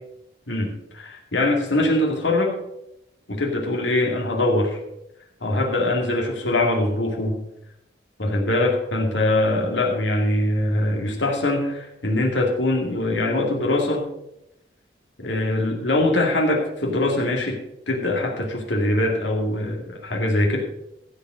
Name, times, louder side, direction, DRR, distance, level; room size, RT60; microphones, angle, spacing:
voice 1, 0.9-2.5 3.3-4.8 5.4-7.4 8.2-14.1 15.2-17.6 17.9-20.6, left 1 dB, 85° left, 0 dB, 2.3 m, -22 dB
15.5 x 5.3 x 6.3 m, 0.83 s
head